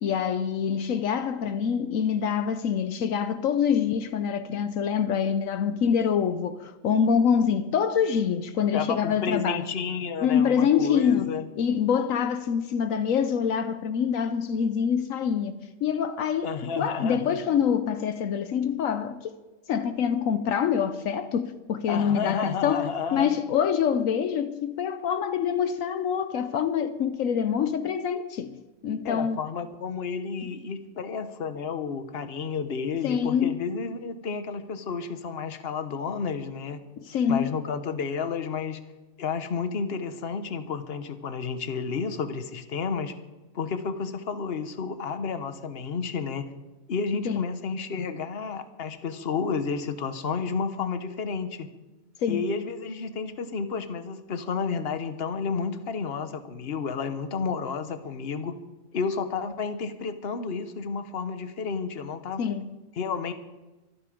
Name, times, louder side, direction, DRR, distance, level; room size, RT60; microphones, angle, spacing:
voice 1, 0.0-9.7 10.2-19.3 19.7-29.4 33.0-33.7 37.0-37.5 47.2-47.5 52.2-52.4 62.4-62.7, left 7 dB, 75° left, 1.1 m, -25 dB
voice 2, 8.7-11.5 16.4-17.4 21.9-23.3 29.0-36.8 37.3-38.8 39.2-43.1 43.5-46.5 46.9-51.7 52.3-58.5 58.9-62.4 63.0-63.3, left 5 dB, 50° left, 1.2 m, -31 dB
24.0 x 10.5 x 5.1 m
omnidirectional pair, 1.4 m